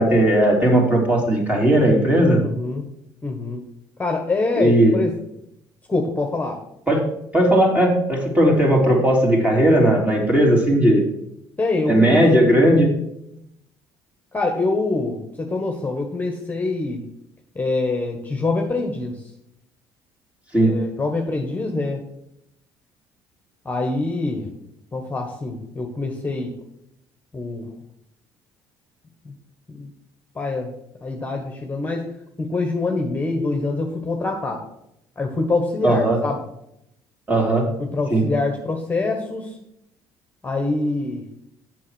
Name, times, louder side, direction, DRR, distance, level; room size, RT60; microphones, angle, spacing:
voice 1, 0.0-2.4 4.6-5.0 6.9-7.0 7.3-11.0 11.9-12.9 20.5-20.8 35.8-36.2 37.3-37.7 38.1-38.3, right 1 dB, 15° right, 0 dB, 3.1 m, -17 dB
voice 2, 2.4-2.9 3.2-3.6 4.0-5.2 5.9-6.6 11.6-12.2 14.3-17.0 17.5-19.2 20.6-22.1 23.6-24.5 24.9-26.5 27.3-27.8 29.2-29.3 29.7-29.9 30.3-30.7 31.0-32.1 32.4-34.6 35.2-36.4 37.8-39.5 40.4-41.2, left 3 dB, 20° left, 3 dB, 1.4 m, -25 dB
7.4 x 6.2 x 6.4 m, 0.79 s
supercardioid pair, 75°, 9 cm